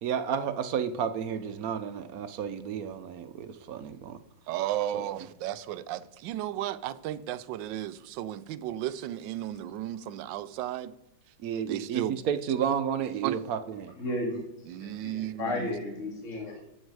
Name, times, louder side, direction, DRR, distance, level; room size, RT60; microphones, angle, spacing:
voice 1, 0.0-4.2 4.9-5.1 11.4-14.0, right 8 dB, 65° right, 0.9 m, -31 dB
voice 2, 4.5-10.9 11.7-12.2 13.2-13.4 14.7-15.7, right 12 dB, 80° right, 1.3 m, -34 dB
voice 3, 14.0-14.4 14.8-16.6, left 1 dB, 45° left, 2.5 m, -33 dB
11.0 x 8.0 x 4.7 m
omnidirectional pair, 2.0 m